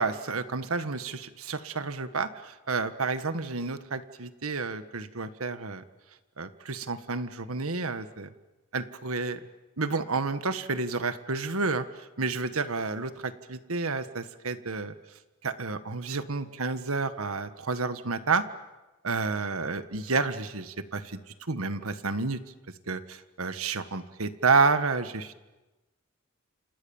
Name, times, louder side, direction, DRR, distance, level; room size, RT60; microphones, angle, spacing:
voice 1, 0.0-5.8 6.4-8.3 8.7-9.4 9.8-14.9 15.4-18.4 19.0-21.2 21.5-22.4 22.9-25.3, right 4 dB, 90° right, 11 dB, 1.6 m, -30 dB
29.0 x 28.0 x 7.2 m, 1.2 s
head